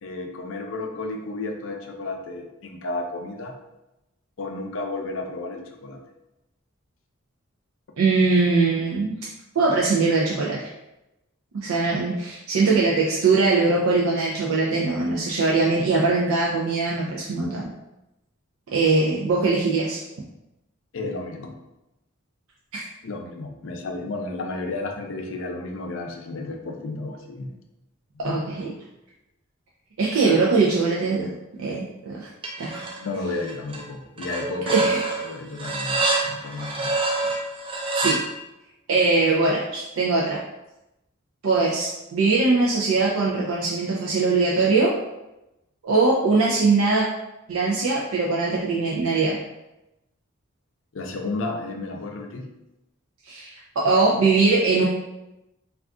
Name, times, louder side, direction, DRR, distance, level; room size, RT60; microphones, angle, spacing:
voice 1, 0.0-3.5 4.4-6.0 18.8-18.9 20.9-21.5 23.0-27.5 28.1-28.8 32.8-37.0 50.9-52.5, left 2 dB, 65° left, 2 dB, 0.4 m, -32 dB
voice 2, 8.0-9.1 9.5-10.7 11.6-17.7 18.7-20.0 22.7-22.8 28.2-28.7 30.0-32.3 32.6-32.8 34.7-35.1 38.0-38.2 38.9-40.4 41.4-44.9 45.8-47.1 47.5-49.4 53.2-54.8, right 3 dB, 90° right, -4 dB, 0.4 m, -21 dB
sound 1, 32.4-33.0 33.3-33.8 34.2-38.2, right 2 dB, 25° right, 0.3 m, -26 dB
2.4 x 2.3 x 3.5 m, 0.94 s
head